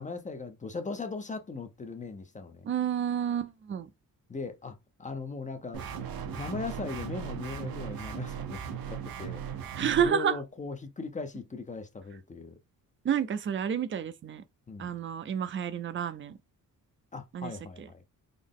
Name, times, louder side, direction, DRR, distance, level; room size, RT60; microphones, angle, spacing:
voice 1, 0.0-2.7 4.3-5.8 6.2-9.4 10.0-12.6 14.7-14.9 17.1-18.0, left 4 dB, 20° left, 0.5 m, -39 dB
voice 2, 2.6-3.9 9.8-10.4 13.0-14.4 14.8-16.4 17.3-17.5 17.8-17.9, right 8 dB, 35° right, 0.4 m, -29 dB
sound 1, 5.7-10.1, right 8 dB, 75° right, 0.7 m, -37 dB
3.8 x 2.0 x 3.5 m
cardioid pair, 120°, 36 cm